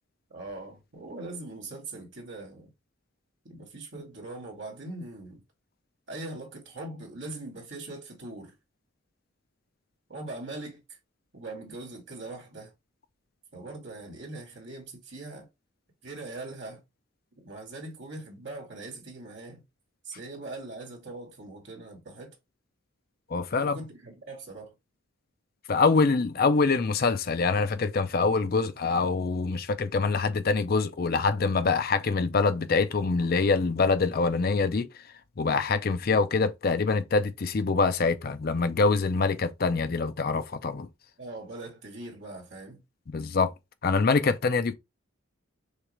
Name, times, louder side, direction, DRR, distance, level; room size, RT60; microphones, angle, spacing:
voice 1, 0.3-2.7 3.4-5.4 6.1-8.5 10.1-11.0 11.3-12.7 13.5-15.5 16.0-16.8 17.4-19.6 20.0-22.4 23.5-24.7 41.2-42.8, right 2 dB, 60° right, 2.2 m, -41 dB
voice 2, 23.3-23.8 25.7-34.9 35.4-40.9 43.1-43.5 43.8-44.7, left 4 dB, 45° left, 0.5 m, -25 dB
6.3 x 2.5 x 3.1 m
head